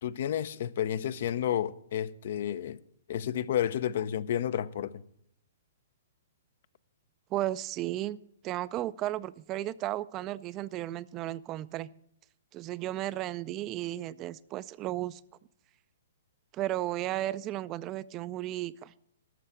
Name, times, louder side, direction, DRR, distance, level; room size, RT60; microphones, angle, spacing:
voice 1, 0.0-2.8 3.1-5.0, left 10 dB, 60° left, 0.5 m, -31 dB
voice 2, 7.3-8.2 8.4-11.9 12.5-15.2 16.5-18.9, right 14 dB, 30° right, 0.3 m, -34 dB
12.5 x 6.5 x 6.8 m
hypercardioid pair, 135°, 0 cm